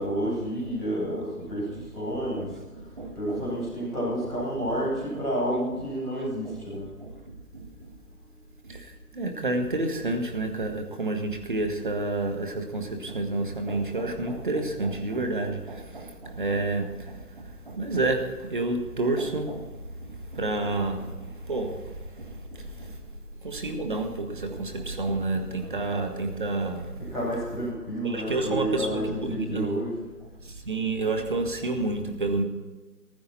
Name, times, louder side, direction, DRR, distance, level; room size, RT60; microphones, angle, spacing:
voice 1, 0.0-2.5 3.1-6.9 27.1-30.0, equal, ahead, -17 dB, 1.2 m, -30 dB
voice 2, 3.0-3.7 5.1-5.2 6.4-7.1 7.5-7.7 8.7-8.9 9.1-19.7 20.0-22.9 23.4-27.1 28.0-29.9 30.5-32.4, right 2 dB, 30° right, 6 dB, 1.7 m, -30 dB
16.5 x 15.0 x 4.2 m, 1.3 s
figure-of-eight pair, 160°, 46 cm